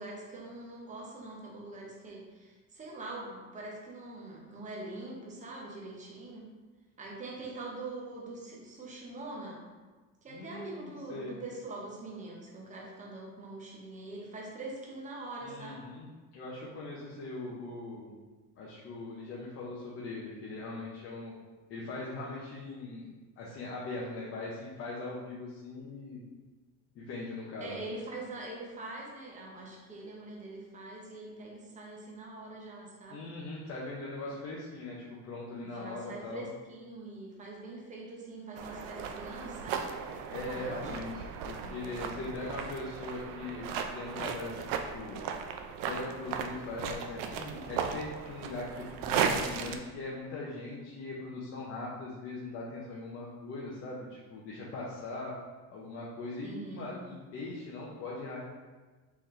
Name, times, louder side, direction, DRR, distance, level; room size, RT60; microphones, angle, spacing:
voice 1, 0.0-6.5 7.0-9.6 10.2-15.8 27.6-33.2 35.6-39.9 40.5-41.0 41.6-42.6 56.4-57.1, right 2 dB, 20° right, -2 dB, 0.8 m, -43 dB
voice 2, 10.3-11.4 15.4-16.1 16.3-18.1 18.6-21.3 21.7-26.2 26.9-27.8 33.1-36.5 40.3-43.7 43.9-45.2 45.9-55.3 55.7-58.4, left 2 dB, 35° left, -5 dB, 0.6 m, -40 dB
mountain hike, 38.6-49.8, right 7 dB, 65° right, 0.5 m, -36 dB
4.2 x 3.8 x 3.1 m, 1.3 s
cardioid pair, 160°, 37 cm